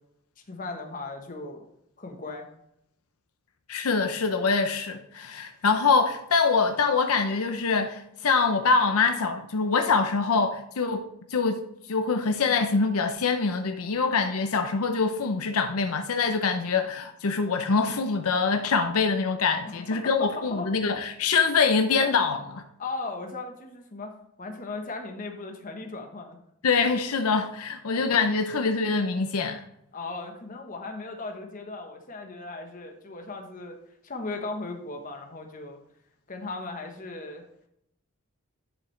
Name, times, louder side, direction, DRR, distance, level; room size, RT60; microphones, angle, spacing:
voice 1, 0.5-1.7 2.0-2.5 19.6-20.7 22.0-22.1 22.8-26.4 27.9-28.1 29.9-33.8 34.0-35.8 36.3-37.4, left 3 dB, 35° left, 1.1 m, -37 dB
voice 2, 3.7-11.6 11.9-22.6 26.6-29.6, left 4 dB, 75° left, 0.6 m, -24 dB
10.5 x 5.7 x 3.2 m
head